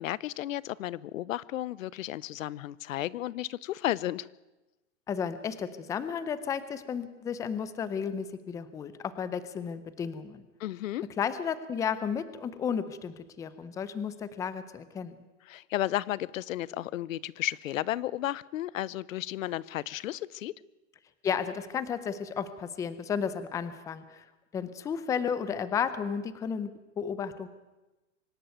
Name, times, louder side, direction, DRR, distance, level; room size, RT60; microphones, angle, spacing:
voice 1, 0.0-4.3 10.6-11.1 15.5-20.5, left 14 dB, 85° left, 22 dB, 0.8 m, -33 dB
voice 2, 5.1-10.5 11.2-15.2 21.2-24.2 24.5-27.5, left 7 dB, 10° left, 14 dB, 0.6 m, -33 dB
24.5 x 11.5 x 9.3 m, 1.1 s
supercardioid pair, 160°, 39 cm